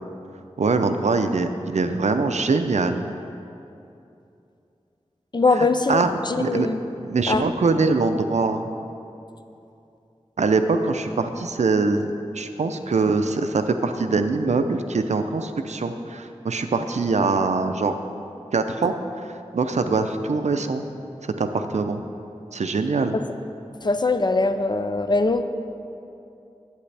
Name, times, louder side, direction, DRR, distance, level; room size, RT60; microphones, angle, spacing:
voice 1, 0.6-3.1 5.6-6.1 6.4-6.7 7.0-8.7 10.4-17.9 18.5-18.9 19.5-20.9 21.2-22.0 22.5-23.2, right 4 dB, 85° right, 8 dB, 0.5 m, -23 dB
voice 2, 5.3-6.8 7.3-7.5 23.1-23.2 23.8-25.4, left 3 dB, 40° left, 9 dB, 0.4 m, -22 dB
11.0 x 8.4 x 3.4 m, 2.7 s
wide cardioid pair, 65°, 12 cm